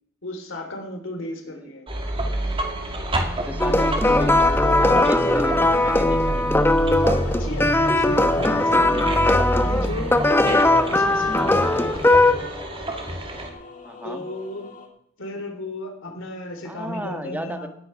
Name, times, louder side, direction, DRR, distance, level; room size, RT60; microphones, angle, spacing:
voice 1, 0.2-1.9 4.9-5.1 7.2-9.2 9.6-12.5 14.0-14.8 15.2-17.7, left 1 dB, 65° left, 4 dB, 3.6 m, -34 dB
sound 1, 1.9-13.5, right 1 dB, 25° right, 2.3 m, -28 dB
voice 2, 3.4-4.5 4.7-6.5 13.8-14.3 16.6-17.7, right 1 dB, 10° right, 7 dB, 1.4 m, -33 dB
sound 2, 3.6-12.3, left 2 dB, 10° left, 1.0 m, -19 dB
voices cine, 6.8-14.9, left 3 dB, 40° left, 2.7 m, -42 dB
18.5 x 10.0 x 5.9 m, 0.71 s
head